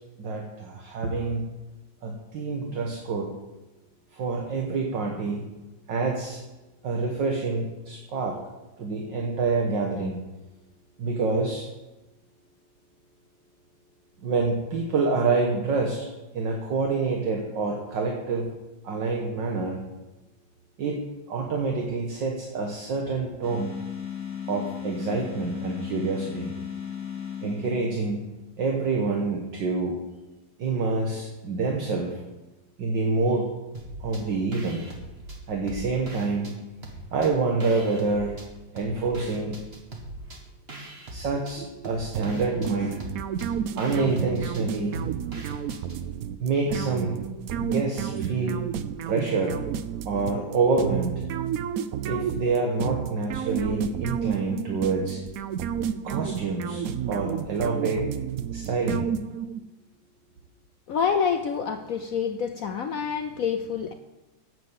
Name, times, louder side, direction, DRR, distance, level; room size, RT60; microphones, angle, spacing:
voice 1, 0.2-1.5 2.0-3.3 4.1-5.4 5.9-6.4 6.8-8.4 8.8-10.2 11.0-11.7 14.2-16.1 16.3-18.5 18.8-19.8 20.8-23.8 24.5-26.5 27.4-28.2 28.6-30.0 30.6-32.2 32.8-33.5 34.0-34.9 35.5-36.6 37.1-38.4 38.7-39.6 41.1-43.0 43.8-45.0 46.4-47.2 47.6-48.6 49.1-49.7 50.1-51.2 52.1-55.2 56.0-58.1 58.5-59.1, right 3 dB, 65° right, 1 dB, 2.0 m, -27 dB
sound 1, 23.4-28.1, left 8 dB, 40° left, 2.4 m, -36 dB
sound 2, 33.7-34.2 34.5-36.5 36.8-38.5 38.8-46.0, right 2 dB, 30° right, 1.9 m, -41 dB
sound 3, 42.1-59.6, right 8 dB, 80° right, 0.7 m, -31 dB
voice 2, 60.9-63.9, left 6 dB, 75° left, 7 dB, 0.8 m, -27 dB
9.4 x 8.3 x 8.2 m, 1.1 s
omnidirectional pair, 2.2 m